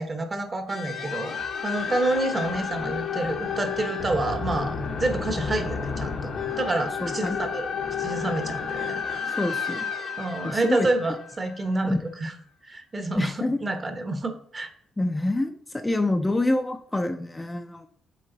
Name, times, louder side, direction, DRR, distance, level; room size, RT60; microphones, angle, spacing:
voice 1, 0.0-1.3 1.6-7.7 8.0-9.0 9.3-9.4 10.2-12.3 12.7-14.7, right 2 dB, 30° right, 7 dB, 1.1 m, -28 dB
sound 1, 0.7-11.9, left 6 dB, 60° left, 0.9 m, -31 dB
voice 2, 7.0-7.4 9.3-9.9 10.4-10.9 11.8-12.0 13.2-13.6 15.0-17.9, left 2 dB, 15° left, 6 dB, 0.5 m, -26 dB
8.4 x 3.2 x 4.0 m, 0.64 s
cardioid pair, 90°, 0 cm